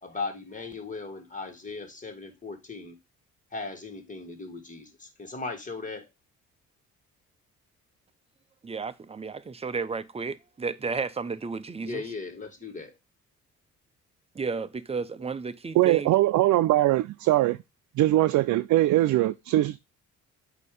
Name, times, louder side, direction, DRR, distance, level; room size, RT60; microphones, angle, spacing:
voice 1, 0.0-3.0 3.5-6.1 11.8-13.0, left 3 dB, 25° left, 1.8 m, -38 dB
voice 2, 8.6-12.0 14.3-16.1, right 4 dB, 20° right, 0.6 m, -33 dB
voice 3, 15.8-17.6 18.0-19.8, right 15 dB, 70° right, 0.4 m, -21 dB
8.2 x 2.9 x 5.0 m
cardioid pair, 90°, 30 cm